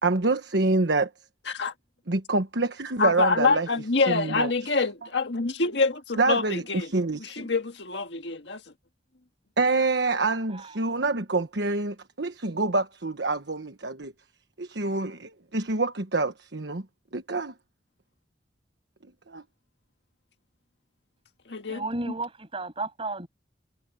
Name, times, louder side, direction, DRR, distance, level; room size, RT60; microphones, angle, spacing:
voice 1, 0.0-1.1 2.1-3.7 4.1-4.5 6.2-7.5 9.6-14.1 14.6-16.8 17.1-17.5 19.3-19.4, right 3 dB, 75° right, 1.3 m, -26 dB
voice 2, 3.0-6.9 7.2-8.6 21.5-21.8, left 4 dB, 75° left, 1.7 m, -26 dB
voice 3, 10.5-11.1 21.7-23.3, right 2 dB, 30° right, 6.8 m, -34 dB
head